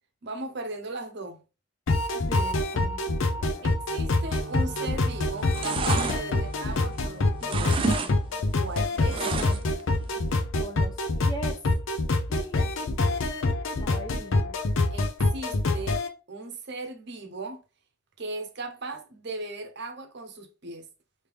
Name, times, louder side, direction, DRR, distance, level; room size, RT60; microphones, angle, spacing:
voice 1, 0.2-1.4 3.6-7.8 8.6-9.2 12.4-13.0 14.9-16.0 16.3-17.6 18.2-20.9, right 2 dB, 55° right, 0.8 m, -38 dB
sound 1, 1.9-16.1, left 2 dB, 70° left, 0.5 m, -26 dB
voice 2, 2.1-3.7 9.3-9.6 10.6-11.6 12.3-12.7 13.8-14.6, equal, 20° left, 0.6 m, -41 dB
Wind instrument woodwind instrument, 3.8-7.9, right 1 dB, 90° right, 0.6 m, -43 dB
sound 2, 4.7-5.0 5.3-7.1 7.4-8.1 8.4-9.8 10.2-10.3, right 4 dB, 25° right, 0.3 m, -30 dB
3.3 x 2.8 x 3.3 m
head